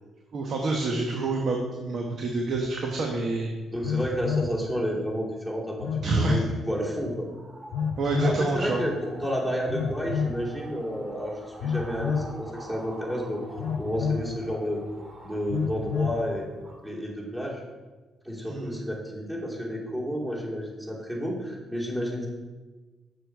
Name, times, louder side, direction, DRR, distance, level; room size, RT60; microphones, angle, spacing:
voice 1, 0.3-3.5 6.0-6.4 8.0-8.8 18.5-18.7, right 3 dB, 60° right, 1 dB, 1.0 m, -27 dB
Telephone, 2.5-2.6 3.8-4.6 5.8-6.5 7.7-8.4 9.7-10.4 11.6-12.3 13.6-14.3 15.5-16.2, left 6 dB, 85° left, 0.5 m, -28 dB
voice 2, 3.7-7.3 8.2-13.4 13.8-14.8 15.2-16.5 16.8-17.6 18.2-22.3, equal, 15° right, -5 dB, 2.9 m, -31 dB
sound 1, 7.1-16.9, right 1 dB, 30° right, 2.2 m, -46 dB
6.9 x 6.7 x 4.6 m, 1.3 s
cardioid pair, 90°, 0 cm